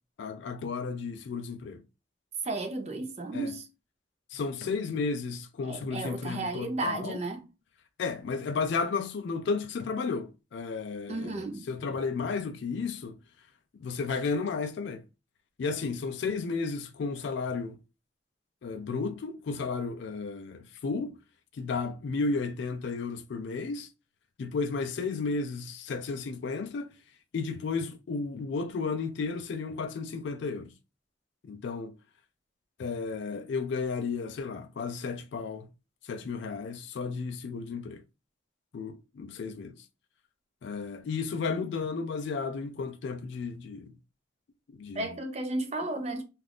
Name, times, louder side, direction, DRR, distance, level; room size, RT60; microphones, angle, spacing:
voice 1, 0.2-1.8 3.3-3.5 4.3-7.2 8.0-13.1 13.8-15.0 15.6-17.8 18.6-21.2 21.6-23.9 24.4-27.0 27.3-30.7 31.4-32.0 32.8-35.7 36.1-38.0 38.7-39.8 40.6-43.9 44.7-45.1, left 4 dB, 60° left, 0.3 m, -33 dB
voice 2, 2.4-3.7 5.6-7.5 11.1-11.7 44.9-46.2, right 2 dB, 30° right, 0.5 m, -33 dB
2.5 x 2.4 x 3.3 m
head